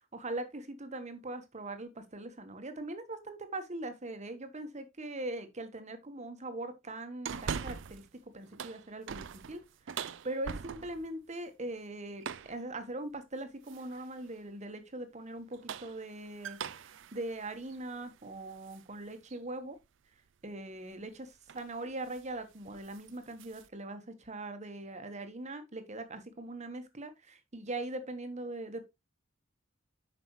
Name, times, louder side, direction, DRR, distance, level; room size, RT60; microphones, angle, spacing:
voice 1, 0.1-9.6 9.8-19.8 20.4-28.9, right 2 dB, 35° right, 1.2 m, -41 dB
sound 1, 7.2-8.1 8.4-11.1 12.2-12.6 13.7-14.1 15.4-18.8 19.3-19.4 20.9-21.1 21.5-21.7 22.0-22.3 22.6-23.7, right 6 dB, 65° right, 0.5 m, -42 dB
7.4 x 5.8 x 3.1 m
head